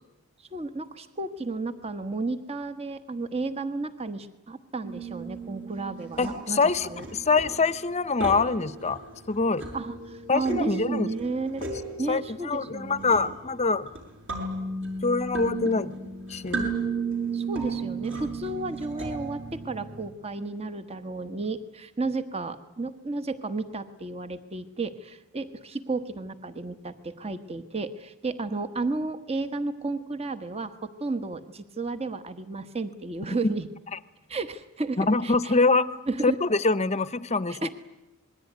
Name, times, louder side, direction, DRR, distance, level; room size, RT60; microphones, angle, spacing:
voice 1, 0.4-7.0 9.7-11.7 12.0-13.4 17.3-33.7 34.3-35.5 36.1-36.3 37.5-37.7, right 3 dB, 30° right, 11 dB, 1.2 m, -33 dB
sound 1, 4.8-20.1, right 3 dB, 55° right, 6.7 m, -35 dB
voice 2, 6.2-9.0 9.3-9.6 10.3-11.1 12.1-13.9 15.0-15.9 16.3-16.9 35.0-35.9 36.2-37.7, left 3 dB, 30° left, 15 dB, 0.8 m, -24 dB
26.5 x 21.0 x 9.4 m, 0.98 s
head